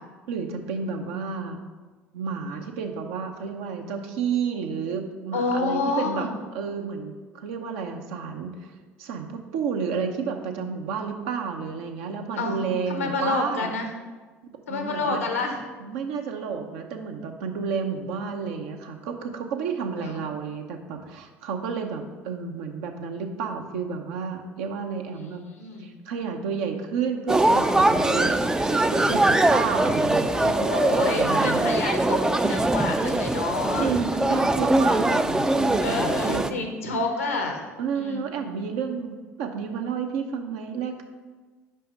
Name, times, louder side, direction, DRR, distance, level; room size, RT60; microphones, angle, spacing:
voice 1, 0.3-1.6 2.1-6.3 6.5-8.7 9.0-13.7 14.7-15.3 15.8-25.4 25.8-31.7 32.4-32.6 33.8-36.7 37.8-41.0, right 6 dB, 65° right, 4 dB, 0.8 m, -31 dB
voice 2, 5.3-6.3 12.4-12.6 12.9-13.9 14.7-15.6 20.0-20.2 25.2-25.9 30.3-34.2 35.8-37.6 38.0-38.2, left 3 dB, 85° left, 4 dB, 0.9 m, -29 dB
sound 1, 27.3-36.5, right 2 dB, 10° right, 0.4 m, -22 dB
5.6 x 5.1 x 5.4 m, 1.3 s
figure-of-eight pair, 65°, 7 cm